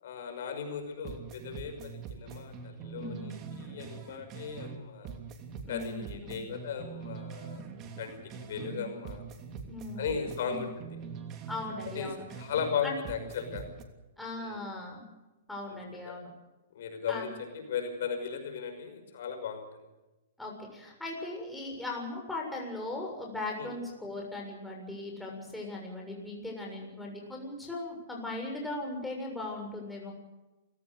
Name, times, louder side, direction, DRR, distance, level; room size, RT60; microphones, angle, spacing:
voice 1, 0.0-5.1 5.7-7.6 8.0-9.2 10.0-10.9 11.9-13.7 14.4-14.6 15.7-16.1 16.7-19.9 23.6-23.7 26.6-26.8, left 6 dB, 65° left, 6 dB, 5.7 m, -37 dB
sound 1, 0.8-0.9 1.0-4.8 5.0-8.8 9.0-12.8 13.1-13.8, right 6 dB, 30° right, 3.0 m, -43 dB
voice 2, 3.0-3.5 5.6-6.4 8.5-9.0 9.7-10.2 10.4-10.6 11.5-12.3 12.8-13.0 14.2-15.0 15.5-16.3 17.1-17.3 20.4-30.1, left 2 dB, 5° left, -1 dB, 7.0 m, -39 dB
28.0 x 16.5 x 6.6 m, 1.1 s
hypercardioid pair, 145°, 0 cm